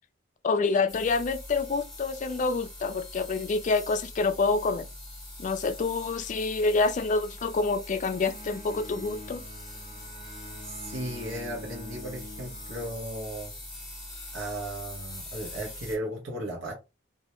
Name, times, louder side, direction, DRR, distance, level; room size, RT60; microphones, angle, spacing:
voice 1, 0.4-4.8 5.4-9.4, left 3 dB, 40° left, 0.3 m, -27 dB
sound 1, 0.9-16.0, left 1 dB, ahead, 0.8 m, -43 dB
Bowed string instrument, 7.9-13.7, left 2 dB, 25° right, 0.6 m, -46 dB
voice 2, 10.6-13.5 14.3-16.7, right 1 dB, 75° right, 0.7 m, -36 dB
2.2 x 2.0 x 2.9 m
head